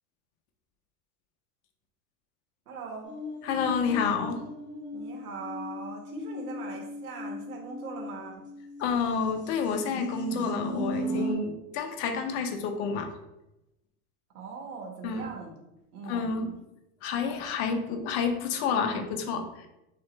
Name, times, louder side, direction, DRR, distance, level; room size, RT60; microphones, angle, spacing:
voice 1, 2.7-3.1 4.9-8.4 14.3-15.5 15.9-16.3, right 4 dB, 90° right, 1 dB, 1.5 m, -40 dB
sound 1, 3.0-8.8 9.4-11.3, equal, 15° right, 1.6 m, -36 dB
voice 2, 3.4-4.4 8.8-13.1 15.0-15.3 16.0-16.6 17.0-19.7, left 5 dB, 50° left, 5 dB, 0.8 m, -29 dB
3.8 x 3.1 x 4.3 m, 0.89 s
supercardioid pair, 140°, 44 cm